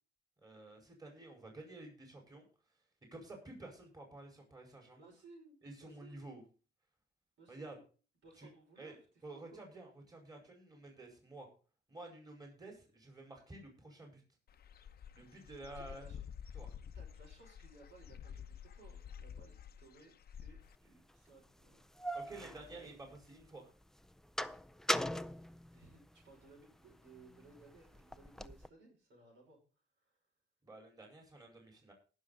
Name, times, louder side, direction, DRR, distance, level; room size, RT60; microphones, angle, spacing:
voice 1, 0.4-2.4 3.0-5.1 5.6-6.4 7.5-7.8 8.4-8.5 8.8-9.0 9.2-11.5 11.9-14.2 15.1-16.0 16.5-16.7 22.1-23.7 30.6-31.9, right 2 dB, 20° right, 1 dB, 4.9 m, -51 dB
voice 2, 5.0-6.3 7.4-7.8 8.2-9.1 9.3-9.6 15.7-16.2 16.9-22.1 22.4-23.2 25.7-29.6 30.0-30.2, right 3 dB, 75° right, -1 dB, 6.0 m, -61 dB
Dog / Bird, 14.5-20.8, left 8 dB, 50° left, 0.8 m, -50 dB
sound 1, 20.8-20.9 21.6-23.5 23.8-26.4 26.9-28.7, equal, ahead, 0.5 m, -40 dB
19.0 x 6.6 x 4.0 m, 0.37 s
cardioid pair, 90°, 20 cm